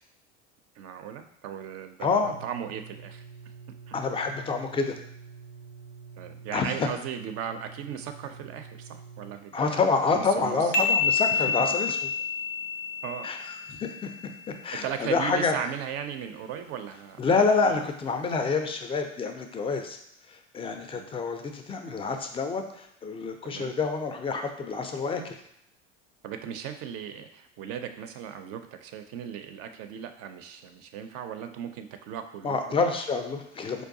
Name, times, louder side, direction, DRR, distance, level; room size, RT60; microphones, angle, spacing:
voice 1, 0.8-3.2 3.9-4.0 6.2-9.8 10.1-10.7 11.3-11.5 13.0-13.3 13.7-13.8 14.8-17.8 20.9-21.1 23.4-23.7 26.2-32.6, right 8 dB, 45° right, 7 dB, 0.4 m, -37 dB
voice 2, 2.0-2.3 3.9-5.0 6.5-6.9 9.5-12.0 13.2-14.1 14.6-15.5 17.2-20.0 20.5-25.4 32.4-33.8, left 4 dB, 15° left, 6 dB, 0.4 m, -27 dB
sound 1, 2.2-9.3, right 5 dB, 85° right, 0.6 m, -47 dB
sound 2, 10.7-14.3, left 5 dB, 85° left, 0.5 m, -28 dB
4.7 x 2.2 x 2.6 m, 0.77 s
hypercardioid pair, 75°, 35 cm